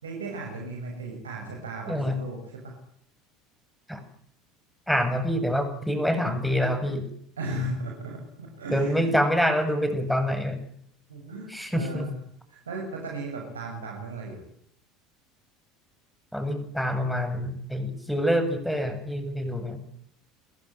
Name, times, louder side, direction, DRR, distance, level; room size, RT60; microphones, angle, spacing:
voice 1, 0.0-2.8 7.4-9.2 11.1-12.2 12.5-14.4, right 2 dB, 85° right, 0 dB, 6.9 m, -36 dB
voice 2, 4.9-7.1 8.7-10.6 11.5-12.1 16.3-19.8, equal, ahead, 9 dB, 8.0 m, -26 dB
29.5 x 16.0 x 9.6 m, 0.69 s
hypercardioid pair, 75°, 0 cm